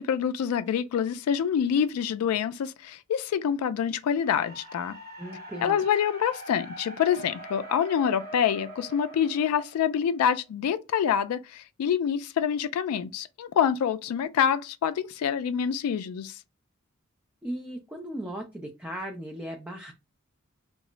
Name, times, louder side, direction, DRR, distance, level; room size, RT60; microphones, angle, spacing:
voice 1, 0.0-5.0 5.6-16.4, left 8 dB, 85° left, 0.3 m, -26 dB
sound 1, 4.2-10.4, right 1 dB, 45° right, 0.8 m, -43 dB
voice 2, 5.2-5.9 17.4-19.9, right 1 dB, 5° right, 0.4 m, -37 dB
2.2 x 2.0 x 3.7 m
head